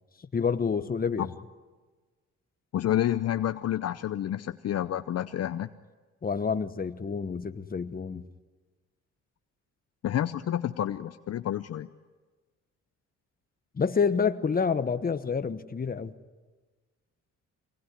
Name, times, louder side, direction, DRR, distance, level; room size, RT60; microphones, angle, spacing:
voice 1, 0.3-1.3 6.2-8.2 13.7-16.1, left 5 dB, 30° left, 11 dB, 1.2 m, -28 dB
voice 2, 2.7-5.7 10.0-11.9, left 11 dB, 55° left, 11 dB, 0.7 m, -29 dB
25.0 x 19.5 x 9.8 m, 1.3 s
cardioid pair, 90°, 30 cm